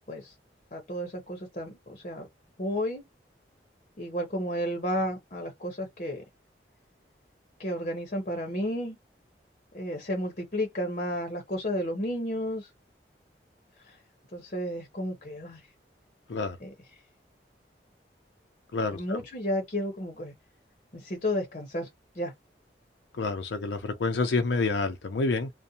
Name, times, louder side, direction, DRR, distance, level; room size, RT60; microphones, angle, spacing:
voice 1, 0.7-2.3 2.6-3.0 4.0-6.2 7.6-9.0 9.7-12.7 13.8-14.0 14.3-15.6 16.6-16.7 18.9-20.3 20.9-21.9 22.1-22.3, equal, 45° left, 0.8 m, -32 dB
voice 2, 18.7-19.2 23.1-25.5, left 3 dB, 90° left, 0.5 m, -28 dB
2.5 x 2.1 x 2.7 m
head